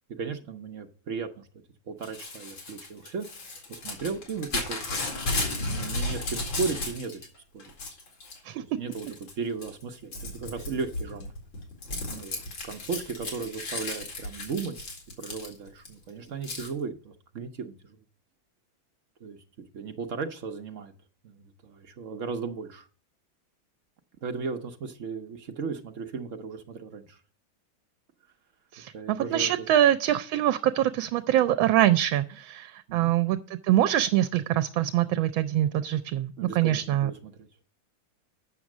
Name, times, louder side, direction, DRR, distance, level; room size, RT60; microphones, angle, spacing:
voice 1, 0.1-1.5 1.9-3.3 3.7-5.0 5.4-7.2 7.5-7.7 8.6-11.3 12.1-14.7 15.2-18.0 19.2-19.4 19.7-20.9 21.2-22.9 24.2-27.2 28.9-29.7 32.9-33.1 36.4-37.5, right 5 dB, 55° right, 6 dB, 0.9 m, -36 dB
Crumpling crinkling / Tearing, 2.0-7.3 7.6-8.4 8.9-9.3 9.6-15.9 16.4-16.7, left 2 dB, 80° left, 3.0 m, -34 dB
voice 2, 28.7-33.4 33.6-37.1, right 12 dB, 80° right, 11 dB, 1.3 m, -24 dB
8.2 x 6.3 x 6.0 m, 0.42 s
omnidirectional pair, 2.2 m